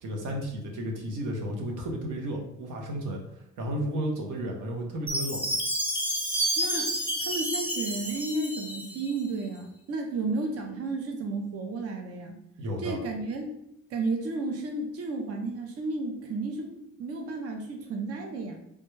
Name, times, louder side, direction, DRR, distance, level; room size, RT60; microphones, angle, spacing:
voice 1, 0.0-5.6 12.6-13.0, right 1 dB, 85° right, 1 dB, 0.8 m, -33 dB
Chime, 5.1-9.2, right 1 dB, 5° right, 0.7 m, -30 dB
voice 2, 6.6-6.9 7.2-12.3 12.8-13.6 13.9-16.7 17.0-18.6, right 3 dB, 50° right, 3 dB, 0.6 m, -32 dB
3.4 x 2.1 x 3.1 m, 0.79 s
cardioid pair, 90°, 30 cm